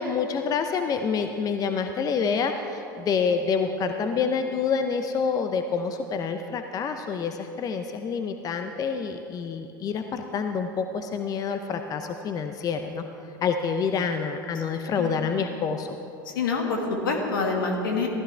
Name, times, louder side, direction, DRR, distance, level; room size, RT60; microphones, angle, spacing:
voice 1, 0.0-13.0 13.4-16.0, left 5 dB, 35° left, 7 dB, 0.7 m, -27 dB
voice 2, 16.2-18.1, left 4 dB, 75° left, 2 dB, 2.0 m, -26 dB
15.5 x 14.5 x 3.4 m, 2.8 s
hypercardioid pair, 85°, 11 cm